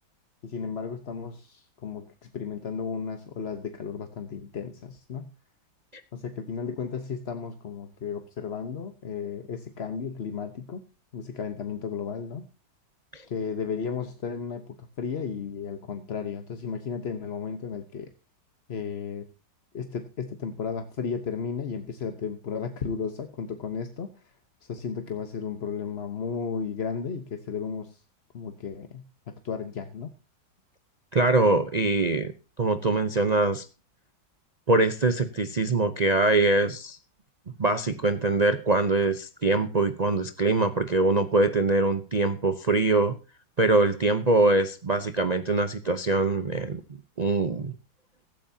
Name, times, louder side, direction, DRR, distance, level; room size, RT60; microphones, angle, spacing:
voice 1, 0.4-5.3 6.1-10.8 11.1-12.5 13.3-18.1 18.7-19.3 19.7-24.2 24.6-28.0 28.3-30.1, left 6 dB, 40° left, 7 dB, 1.0 m, -34 dB
voice 2, 31.1-32.3 32.6-33.7 34.7-37.0 37.6-43.2 43.6-46.8 47.2-47.7, right 2 dB, 80° right, 9 dB, 0.3 m, -23 dB
16.5 x 14.0 x 2.8 m, 0.34 s
omnidirectional pair, 2.1 m